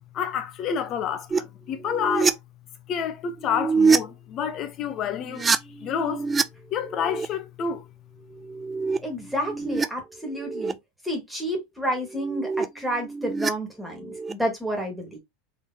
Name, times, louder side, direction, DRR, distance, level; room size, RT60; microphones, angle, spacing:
voice 1, 0.1-2.4 2.9-5.5 5.8-6.3 6.7-7.9, left 7 dB, 40° left, 0.8 m, -29 dB
sound 1, 1.3-1.4 1.8-2.3 3.4-4.0 5.2-6.4 6.7-7.3 8.3-9.9 10.2-10.7 12.1-13.5 13.9-14.3, right 5 dB, 20° right, 0.3 m, -26 dB
voice 2, 9.0-10.8 11.0-15.2, equal, ahead, 1.8 m, -30 dB
4.1 x 3.4 x 2.8 m
supercardioid pair, 135°, 0 cm